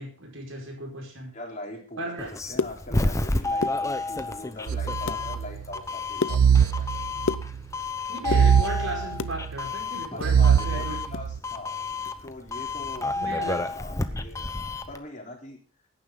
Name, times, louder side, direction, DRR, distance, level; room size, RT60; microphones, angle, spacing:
voice 1, 0.0-1.3 2.0-2.3 8.1-11.0 13.2-13.7 14.0-14.2, right 1 dB, 65° right, 2 dB, 5.0 m, -35 dB
voice 2, 1.3-6.9 10.1-11.8 12.2-14.4 14.9-15.6, left 1 dB, 35° left, 1 dB, 3.5 m, -41 dB
Doorbell, 2.2-15.0, left 2 dB, 15° left, 0.8 m, -31 dB
sound 1, 2.3-3.3 3.5-4.3 4.7-5.3 5.6-7.9 8.2-9.4 9.8-11.3 11.6-11.7 12.0-12.3 12.6-12.9, left 4 dB, 60° left, 0.6 m, -32 dB
sound 2, 4.7-5.6 6.3-7.6 8.3-9.6 10.2-11.4, right 7 dB, 85° right, 0.4 m, -22 dB
17.0 x 9.9 x 3.8 m, 0.42 s
head